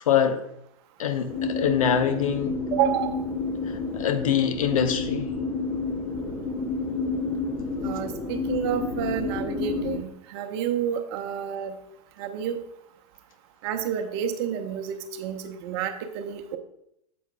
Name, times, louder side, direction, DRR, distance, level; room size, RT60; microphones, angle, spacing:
voice 1, 0.1-0.4 1.0-2.6 3.7-5.3, left 8 dB, 65° left, 8 dB, 0.8 m, -24 dB
sound 1, 1.3-10.0, left 3 dB, 15° left, 0.9 m, -30 dB
voice 2, 2.7-3.1 7.8-11.7 12.2-12.6 13.6-16.6, right 9 dB, 45° right, 6 dB, 0.9 m, -29 dB
9.1 x 7.2 x 2.3 m, 0.79 s
figure-of-eight pair, 105°, 19 cm